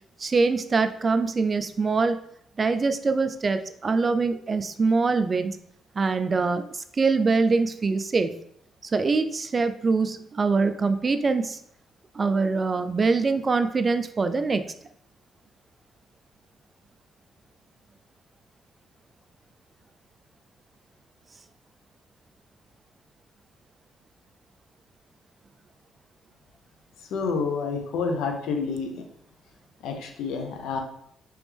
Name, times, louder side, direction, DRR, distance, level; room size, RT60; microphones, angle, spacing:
voice 1, 0.2-2.2 2.6-5.6 6.0-8.4 8.8-11.6 12.1-14.6, right 4 dB, 35° right, 10 dB, 0.3 m, -24 dB
voice 2, 27.1-29.0 29.8-30.8, left 5 dB, 85° left, 4 dB, 0.6 m, -28 dB
3.3 x 3.0 x 3.4 m, 0.70 s
cardioid pair, 90°, 0 cm